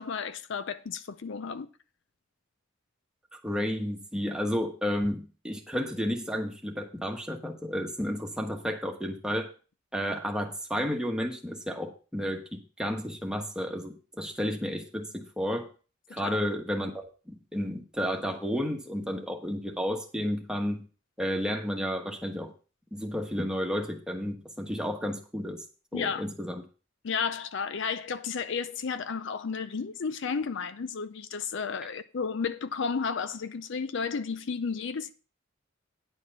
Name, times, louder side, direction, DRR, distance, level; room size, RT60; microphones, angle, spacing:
voice 1, 0.0-1.7 16.2-16.4 25.9-26.3 27.0-35.1, left 5 dB, 65° left, 0.5 m, -32 dB
voice 2, 3.3-9.5 9.9-15.7 16.1-20.9 21.2-22.5 22.9-25.6 25.9-26.6, equal, 5° right, 1.2 m, -32 dB
10.0 x 4.6 x 6.7 m
head